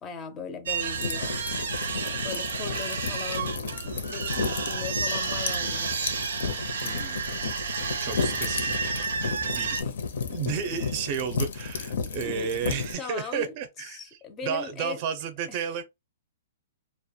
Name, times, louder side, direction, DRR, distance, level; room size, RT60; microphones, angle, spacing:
voice 1, 0.0-1.4 2.0-6.0 9.5-9.9 12.3-12.5 13.0-13.6 13.9-15.0 15.5-15.6, left 6 dB, 20° left, 0.4 m, -39 dB
sound 1, 0.7-9.8, right 5 dB, 90° right, 0.5 m, -31 dB
sound 2, 0.9-12.9, left 5 dB, 75° left, 0.5 m, -33 dB
voice 2, 6.8-7.3 8.0-8.9 9.5-9.8 10.3-14.1 14.4-15.8, right 7 dB, 40° right, 0.5 m, -32 dB
2.2 x 2.1 x 2.7 m
hypercardioid pair, 155°, 0 cm